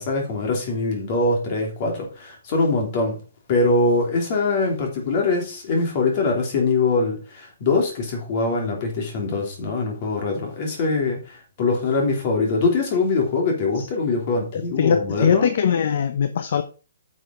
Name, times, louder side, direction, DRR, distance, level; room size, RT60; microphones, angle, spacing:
voice 1, 0.0-3.2 3.5-15.5, left 3 dB, 30° left, 3.1 m, -23 dB
voice 2, 14.5-16.6, left 7 dB, 45° left, 0.7 m, -21 dB
9.7 x 6.3 x 3.8 m
hypercardioid pair, 175°, 0 cm